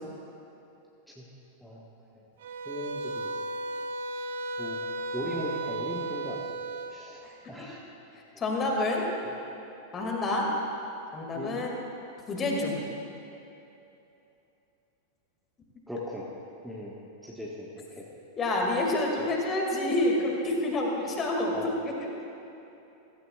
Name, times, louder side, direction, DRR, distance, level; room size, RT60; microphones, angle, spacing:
sound 1, 2.4-7.0, right 2 dB, 60° right, 0.7 m, -34 dB
voice 1, 2.6-3.3 4.6-4.8 5.1-6.4 6.9-7.8 11.3-11.5 15.9-16.3 16.6-16.9 17.2-18.1 19.2-19.3 21.5-21.7, equal, ahead, -5 dB, 1.5 m, -38 dB
voice 2, 8.4-9.0 9.9-10.5 11.1-11.8 12.3-12.9 18.4-22.1, left 2 dB, 25° left, -1 dB, 2.2 m, -28 dB
15.5 x 15.5 x 2.4 m, 2.9 s
figure-of-eight pair, 90°, 0 cm